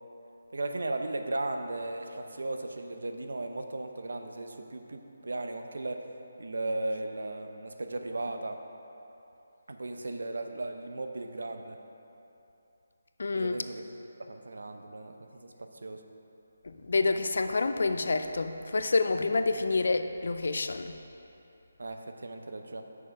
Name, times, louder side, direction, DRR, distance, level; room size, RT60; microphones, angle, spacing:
voice 1, 0.5-6.1 6.4-8.6 9.7-11.8 13.3-13.8 14.2-16.0 21.8-22.8, right 2 dB, 80° right, 5 dB, 0.7 m, -36 dB
voice 2, 13.2-13.6 16.6-21.0, left 3 dB, 65° left, 9 dB, 0.5 m, -28 dB
7.4 x 6.5 x 4.8 m, 2.9 s
hypercardioid pair, 170°, 0 cm